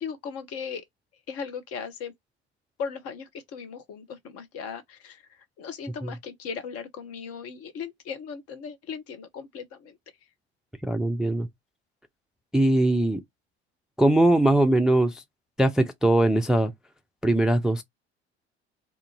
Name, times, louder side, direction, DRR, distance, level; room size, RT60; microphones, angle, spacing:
voice 1, 0.0-0.8 1.3-2.1 2.8-10.0, left 6 dB, 45° left, 0.8 m, -37 dB
voice 2, 10.8-11.5 12.5-13.2 14.0-15.2 15.6-16.7 17.2-17.8, right 1 dB, ahead, 0.3 m, -21 dB
2.6 x 2.4 x 2.8 m
figure-of-eight pair, 60°, 33 cm